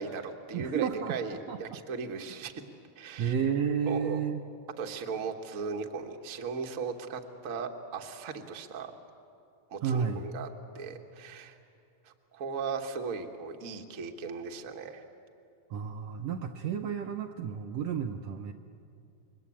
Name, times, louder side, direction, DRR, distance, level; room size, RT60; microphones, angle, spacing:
voice 1, 0.0-2.5 3.0-3.3 3.9-4.2 4.8-8.9 9.7-10.5 10.7-11.6 12.0-15.0, right 5 dB, 40° right, 3 dB, 1.2 m, -37 dB
voice 2, 0.5-1.8 3.2-4.4 9.8-10.3 15.7-18.5, right 7 dB, 70° right, 4 dB, 1.7 m, -32 dB
28.0 x 23.0 x 8.5 m, 2.6 s
omnidirectional pair, 3.6 m